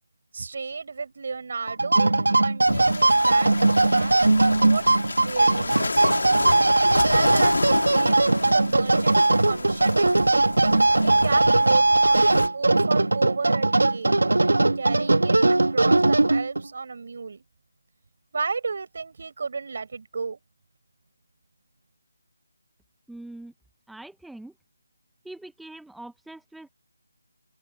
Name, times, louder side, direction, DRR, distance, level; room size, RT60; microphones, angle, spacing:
voice 1, 0.3-6.3 6.9-10.1 11.0-14.2 14.8-15.4 15.7-17.4 18.3-20.4, right 4 dB, 50° right, 5.7 m, -33 dB
sound 1, 1.7-16.7, right 2 dB, 90° right, 1.6 m, -20 dB
sound 2, 2.6-12.5, left 3 dB, 70° left, 2.4 m, -30 dB
voice 2, 23.1-23.5 23.9-24.5 25.2-26.7, right 2 dB, ahead, 0.7 m, -42 dB
open air
figure-of-eight pair, 165°, 0 cm